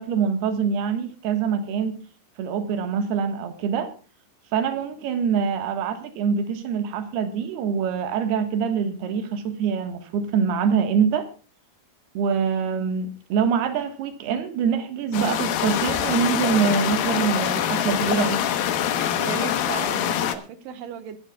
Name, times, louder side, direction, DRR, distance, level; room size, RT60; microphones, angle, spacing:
voice 1, 0.0-2.0 2.4-3.9 4.5-11.3 12.2-18.4, right 6 dB, 85° right, 8 dB, 3.6 m, -24 dB
sound 1, 15.1-20.4, left 10 dB, 70° left, 2.8 m, -24 dB
voice 2, 19.2-21.2, right 7 dB, 65° right, 10 dB, 2.7 m, -35 dB
23.5 x 12.5 x 2.3 m, 0.36 s
omnidirectional pair, 4.4 m